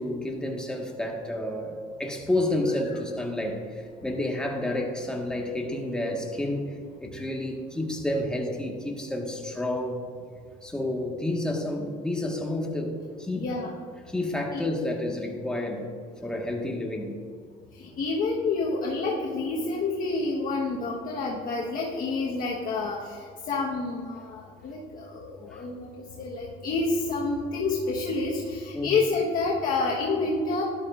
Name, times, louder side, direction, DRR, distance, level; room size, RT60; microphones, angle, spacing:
voice 1, 0.0-6.7 7.0-10.0 10.6-13.5 14.1-15.9 16.2-17.2 25.5-25.6 28.7-28.9, left 1 dB, 5° left, 0 dB, 1.5 m, -30 dB
voice 2, 13.4-13.7 14.5-14.6 17.7-30.6, left 3 dB, 55° left, -4 dB, 1.4 m, -29 dB
13.0 x 11.5 x 2.5 m, 2.2 s
cardioid pair, 110°, 17 cm